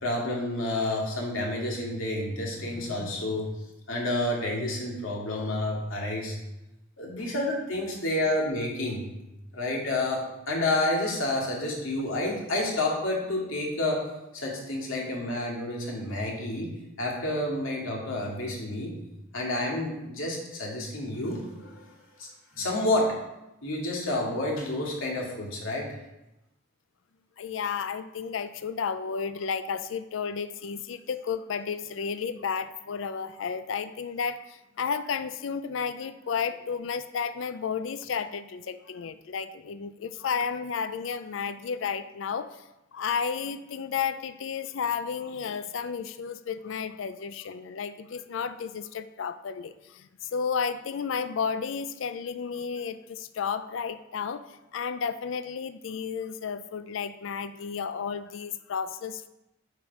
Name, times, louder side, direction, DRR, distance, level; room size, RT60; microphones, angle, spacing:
voice 1, 0.0-3.5 3.9-6.3 7.0-9.0 9.5-14.0 14.3-16.7 17.0-18.9 19.3-21.8 22.2-22.3 22.5-23.1 23.6-25.9, left 1 dB, 90° left, -2 dB, 2.3 m, -29 dB
voice 2, 27.4-42.5 42.9-54.4 54.7-59.3, left 6 dB, 70° left, 12 dB, 0.4 m, -32 dB
9.1 x 5.1 x 4.8 m, 0.95 s
head